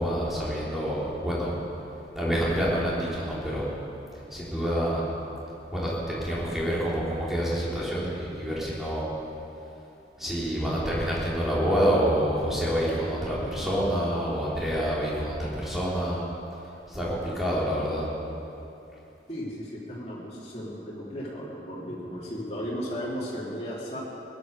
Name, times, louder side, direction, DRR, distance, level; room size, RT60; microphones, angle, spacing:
voice 1, 0.0-1.6 2.2-3.7 4.3-5.0 5.7-9.1 10.2-16.2 16.9-18.1, equal, ahead, -7 dB, 3.4 m, -27 dB
voice 2, 19.3-24.0, equal, 35° left, -6 dB, 3.4 m, -35 dB
17.0 x 11.0 x 6.7 m, 2.9 s
head